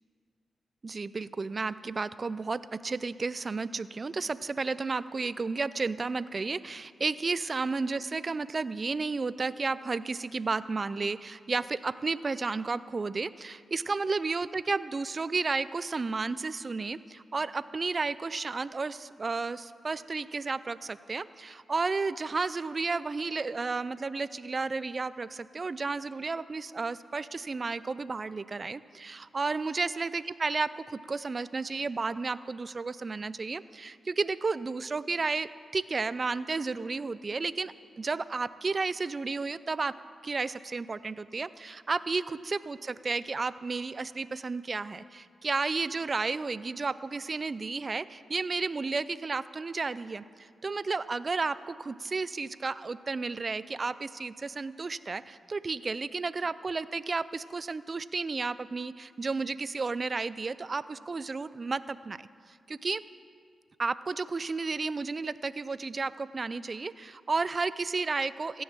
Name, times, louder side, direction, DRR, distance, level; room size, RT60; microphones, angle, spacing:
voice 1, 0.8-39.9 40.2-62.2 62.5-63.0 63.8-68.6, right 4 dB, 45° right, 16 dB, 0.5 m, -32 dB
16.0 x 7.1 x 7.4 m, 2.2 s
supercardioid pair, 40°, 0 cm